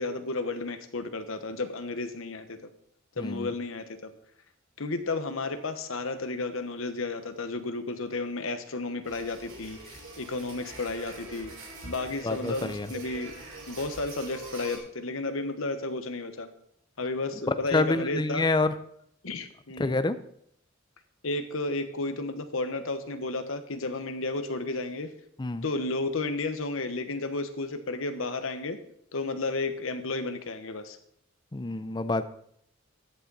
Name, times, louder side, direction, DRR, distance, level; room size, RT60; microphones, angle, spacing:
voice 1, 0.0-2.7 3.2-4.1 4.8-11.5 11.8-13.3 13.7-16.5 17.0-18.4 19.2-19.9 21.2-25.1 25.6-28.8 29.1-31.0, left 3 dB, 75° left, 9 dB, 1.1 m, -32 dB
voice 2, 3.2-3.5 12.2-12.9 17.7-18.7 19.8-20.2 25.4-25.6 31.5-32.3, left 2 dB, 20° left, 12 dB, 0.5 m, -27 dB
sound 1, 9.0-14.8, right 2 dB, 65° right, 3.9 m, -44 dB
13.5 x 8.7 x 4.0 m, 0.70 s
head